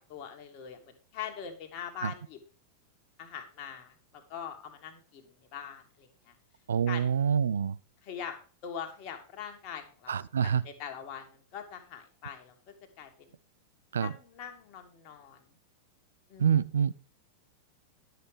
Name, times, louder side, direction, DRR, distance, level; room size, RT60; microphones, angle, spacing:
voice 1, 0.0-2.4 3.2-6.3 6.9-7.2 8.0-8.4 8.6-13.4 14.0-15.4 16.3-16.6, left 8 dB, 40° left, 1.9 m, -43 dB
voice 2, 6.7-7.8 10.1-10.6 13.9-14.1 16.4-16.9, right 7 dB, 70° right, 0.5 m, -26 dB
11.0 x 6.5 x 5.0 m
figure-of-eight pair, 90°, 0 cm